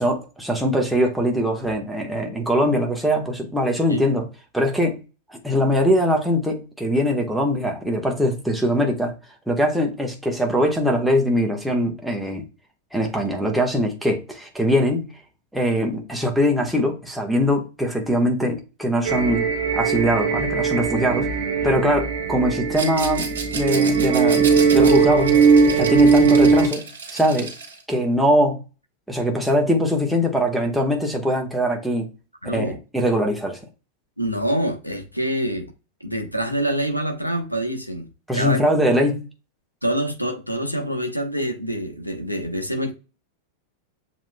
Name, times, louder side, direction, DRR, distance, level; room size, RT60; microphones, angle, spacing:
voice 1, 0.0-4.2 4.5-5.0 5.4-9.1 9.5-12.4 12.9-15.1 15.5-19.5 19.7-21.3 21.6-25.4 25.7-26.8 27.1-27.5 27.9-28.6 29.1-32.1 32.4-33.6 38.3-39.2, equal, ahead, 1.1 m, -22 dB
sound 1, 19.0-26.7, right 5 dB, 45° right, 0.9 m, -19 dB
Rattle, 22.7-27.8, right 4 dB, 65° right, 1.9 m, -33 dB
voice 2, 32.4-32.8 34.2-35.7 36.0-38.1 38.3-38.6 39.8-42.9, right 1 dB, 90° left, 0.7 m, -26 dB
7.3 x 2.9 x 2.2 m
figure-of-eight pair, 90°, 0 cm